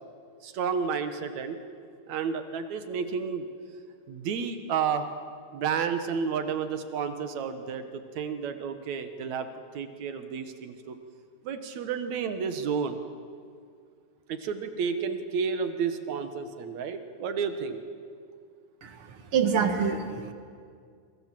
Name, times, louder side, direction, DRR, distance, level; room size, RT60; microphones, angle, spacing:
voice 1, 0.4-1.6 2.1-3.5 4.1-5.1 5.5-9.5 9.7-11.0 11.4-13.0 14.3-17.8, right 6 dB, 70° right, 8 dB, 2.7 m, -31 dB
voice 2, 18.8-20.3, right 6 dB, 50° right, 7 dB, 2.3 m, -27 dB
27.5 x 24.5 x 7.6 m, 2.2 s
omnidirectional pair, 3.4 m